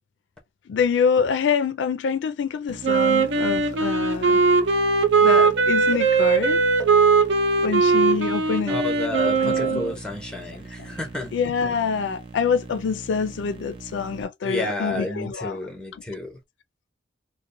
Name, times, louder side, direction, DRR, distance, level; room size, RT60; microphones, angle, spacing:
voice 1, 0.7-4.4 5.2-6.6 7.6-8.8 9.2-9.9 10.8-11.0 11.3-15.6 15.9-16.0, left 6 dB, 90° left, 0.3 m, -26 dB
sound 1, 2.7-14.2, right 3 dB, 30° right, 0.5 m, -41 dB
Wind instrument woodwind instrument, 2.8-9.9, right 4 dB, 90° right, 0.6 m, -20 dB
voice 2, 8.7-11.3 14.4-16.4, left 2 dB, 5° left, 0.8 m, -31 dB
2.5 x 2.1 x 2.6 m
head